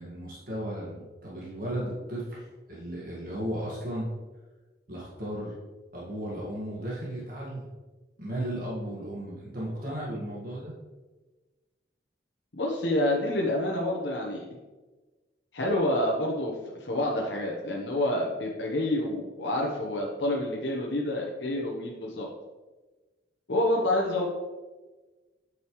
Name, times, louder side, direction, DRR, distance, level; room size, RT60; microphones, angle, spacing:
voice 1, 0.0-4.1 4.9-5.5 5.9-7.7 8.2-10.7, right 1 dB, 50° right, -5 dB, 1.8 m, -35 dB
voice 2, 12.6-14.4 15.5-22.3 23.5-24.3, left 1 dB, 75° left, -2 dB, 1.1 m, -28 dB
8.6 x 6.6 x 3.1 m, 1.2 s
head